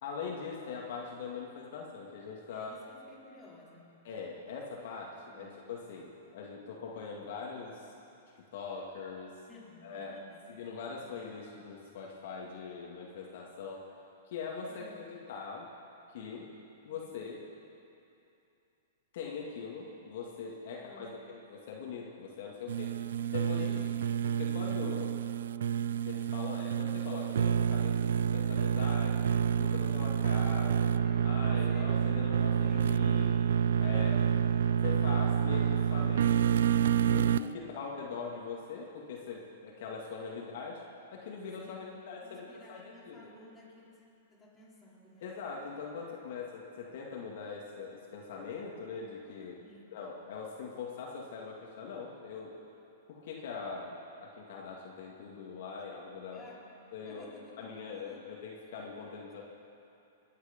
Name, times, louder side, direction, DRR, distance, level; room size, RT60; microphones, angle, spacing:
voice 1, 0.0-2.7 4.0-7.9 8.5-9.4 9.8-10.2 10.5-13.8 14.3-15.7 16.1-16.5 16.9-17.4 19.1-22.9 23.3-23.9 24.2-25.2 25.8-29.2 29.6-30.9 31.2-33.4 33.8-34.2 34.8-36.6 37.0-40.8 41.1-43.3 45.2-49.6 49.9-52.6 53.1-56.4 56.9-57.3 57.6-59.4, left 5 dB, 60° left, -2 dB, 2.2 m, -42 dB
voice 2, 2.5-4.0 5.3-5.5 9.5-10.4 14.7-15.1 20.7-21.2 23.5-24.0 30.9-33.1 33.9-34.4 37.5-37.9 40.3-40.5 41.6-44.0 44.3-45.3 49.6-49.9 56.3-56.7 57.0-58.3, left 2 dB, 15° left, -6 dB, 4.2 m, -55 dB
sound 1, 22.7-37.5, right 8 dB, 75° right, 0.3 m, -28 dB
22.0 x 9.8 x 5.3 m, 2.7 s
hypercardioid pair, 130°, 0 cm